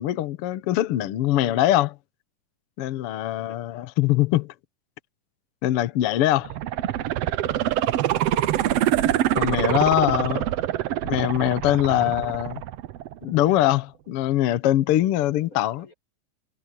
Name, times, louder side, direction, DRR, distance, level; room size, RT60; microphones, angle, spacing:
voice 1, 0.0-2.0 2.8-4.5 5.6-6.5 9.3-10.4 11.0-12.6 13.2-15.9, left 14 dB, 75° left, 1.3 m, -22 dB
voice 2, 3.1-3.9 6.2-7.1 9.6-10.8 11.8-12.5 15.0-15.9, left 2 dB, 25° left, 6.0 m, -51 dB
sound 1, 6.4-13.4 13.8-13.9, right 12 dB, 85° right, 1.4 m, -25 dB
omnidirectional pair, 3.9 m